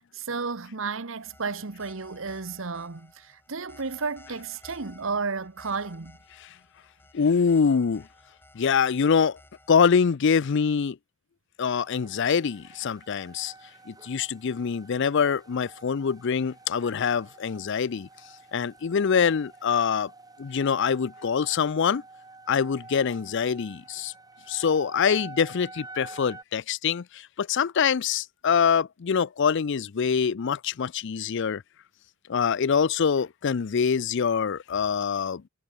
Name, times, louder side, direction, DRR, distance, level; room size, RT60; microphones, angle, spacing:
voice 1, 0.0-6.2, right 4 dB, 65° right, 1.1 m, -33 dB
sound 1, 1.2-9.8, left 1 dB, 10° left, 6.4 m, -55 dB
voice 2, 7.1-8.1 8.5-9.4 9.7-11.0 11.6-13.5 13.9-18.1 18.5-20.1 20.4-22.0 22.5-24.1 24.5-31.6 32.3-35.4, left 6 dB, 55° left, 0.5 m, -24 dB
sound 2, 11.8-26.4, right 3 dB, 20° right, 3.9 m, -48 dB
head